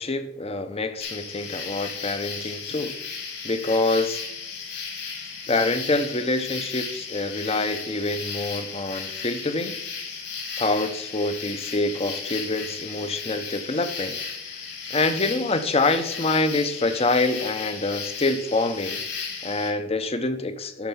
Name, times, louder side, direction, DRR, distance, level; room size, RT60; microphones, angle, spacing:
voice 1, 0.0-3.0 3.4-4.2 5.5-9.8 10.6-14.2 14.5-14.6 14.9-19.1 19.4-20.9, left 2 dB, 30° left, 10 dB, 0.7 m, -26 dB
sound 1, 1.0-19.7, left 5 dB, 50° left, 2.1 m, -35 dB
12.0 x 4.4 x 5.6 m, 0.86 s
head